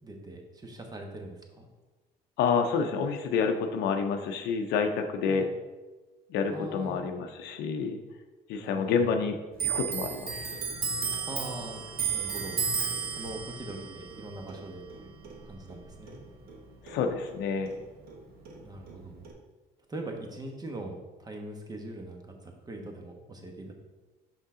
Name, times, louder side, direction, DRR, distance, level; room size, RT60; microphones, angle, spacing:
voice 1, 0.0-1.7 5.3-5.4 6.5-7.0 8.6-9.1 11.2-11.9 12.1-12.6 13.2-15.1 15.4-16.2 18.6-19.3 19.9-23.7, right 1 dB, 25° right, 3 dB, 1.1 m, -41 dB
voice 2, 2.4-5.5 6.3-8.0 8.5-9.4 9.6-10.6 16.8-17.7, left 5 dB, 80° left, 5 dB, 0.6 m, -28 dB
Clock, 9.5-16.6 16.9-18.2 18.5-19.3, right 6 dB, 65° right, 1.2 m, -34 dB
5.8 x 5.4 x 3.7 m, 1.2 s
cardioid pair, 110°, 17 cm